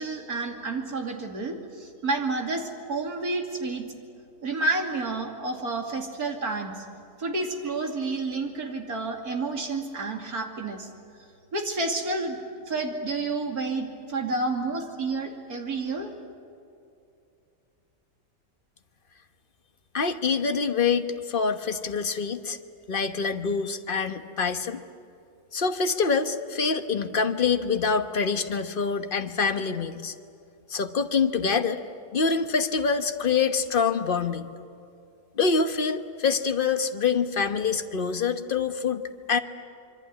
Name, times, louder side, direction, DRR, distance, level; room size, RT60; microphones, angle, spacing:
voice 1, 0.0-3.9 4.4-6.8 7.2-10.9 11.5-12.4 12.7-16.1, right 3 dB, 55° right, 2 dB, 3.2 m, -30 dB
voice 2, 19.9-22.6 22.9-24.8 25.5-30.1 30.7-31.8 32.1-34.5 35.3-39.0 39.3-39.4, left 5 dB, 35° left, 8 dB, 1.1 m, -25 dB
26.5 x 23.0 x 9.6 m, 2.5 s
omnidirectional pair, 1.9 m